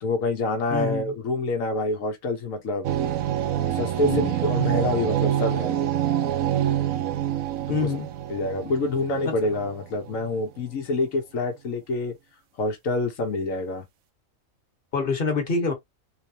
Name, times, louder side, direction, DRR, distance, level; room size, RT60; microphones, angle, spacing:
voice 1, 0.0-2.9 3.7-5.8 7.7-7.9 8.3-12.1 12.6-13.8, left 2 dB, 75° left, 1.4 m, -27 dB
voice 2, 0.7-1.1 4.0-4.3 7.7-8.1 9.2-9.3 14.9-15.7, left 4 dB, 40° left, 1.5 m, -26 dB
sound 1, 2.8-10.3, right 11 dB, 85° right, 1.1 m, -26 dB
3.8 x 3.3 x 2.8 m
omnidirectional pair, 1.4 m